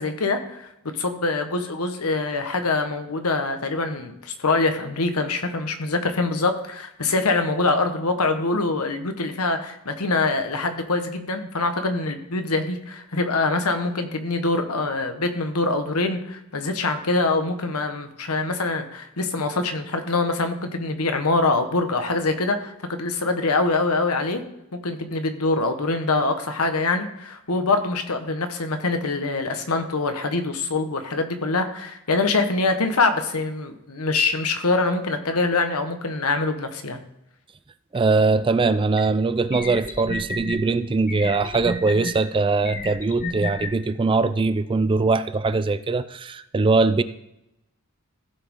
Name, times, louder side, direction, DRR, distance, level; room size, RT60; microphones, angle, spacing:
voice 1, 0.0-24.4 24.8-37.0, left 3 dB, 80° left, 7 dB, 1.2 m, -24 dB
voice 2, 37.9-47.0, right 3 dB, 25° right, 13 dB, 0.3 m, -21 dB
sound 1, 39.0-39.1 39.5-40.6 41.1-42.1 42.6-43.7, left 2 dB, 35° left, 1.0 m, -30 dB
15.5 x 6.1 x 3.7 m, 0.84 s
head